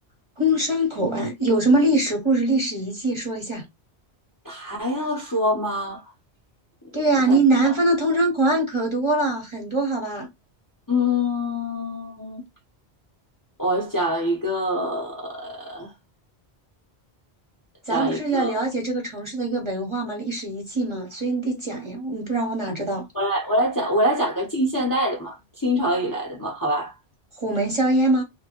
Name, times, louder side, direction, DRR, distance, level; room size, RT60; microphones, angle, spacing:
voice 1, 0.4-3.6 6.9-10.3 17.9-23.1 27.4-28.2, right 2 dB, 30° right, 0.8 m, -23 dB
voice 2, 4.4-6.0 7.3-7.4 7.6-7.7 10.9-12.4 13.6-15.9 17.9-18.5 23.1-26.9, left 1 dB, 20° left, 0.7 m, -25 dB
2.8 x 2.2 x 2.8 m
omnidirectional pair, 1.1 m